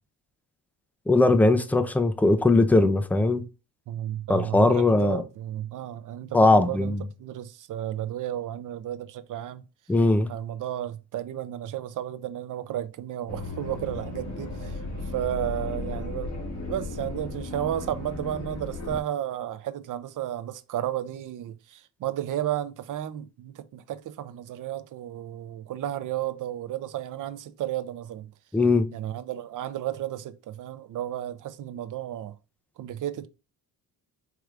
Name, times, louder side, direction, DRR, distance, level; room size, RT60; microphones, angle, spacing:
voice 1, 1.1-3.4 4.3-5.2 6.3-7.0 9.9-10.3 28.5-28.9, left 2 dB, 5° left, 0.3 m, -20 dB
voice 2, 3.9-9.6 10.3-14.8 15.1-16.3 16.7-28.3 28.9-32.4 32.8-33.3, right 12 dB, 50° right, 0.5 m, -33 dB
sound 1, 13.3-19.0, left 2 dB, 85° left, 1.9 m, -35 dB
4.7 x 3.3 x 2.4 m
cardioid pair, 110°, 42 cm